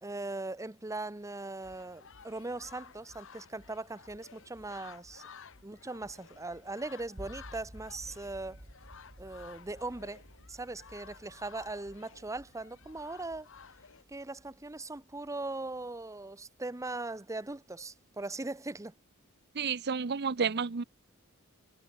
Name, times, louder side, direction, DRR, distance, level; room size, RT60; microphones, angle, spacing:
voice 1, 0.0-5.2 5.6-8.6 9.2-10.2 10.5-13.5 14.1-18.9, right 2 dB, 15° right, 0.8 m, -40 dB
sound 1, 1.6-14.0, left 5 dB, 65° left, 1.7 m, -54 dB
sound 2, 7.2-17.2, equal, 35° right, 2.9 m, -54 dB
voice 2, 19.5-20.8, right 5 dB, 50° right, 0.7 m, -31 dB
head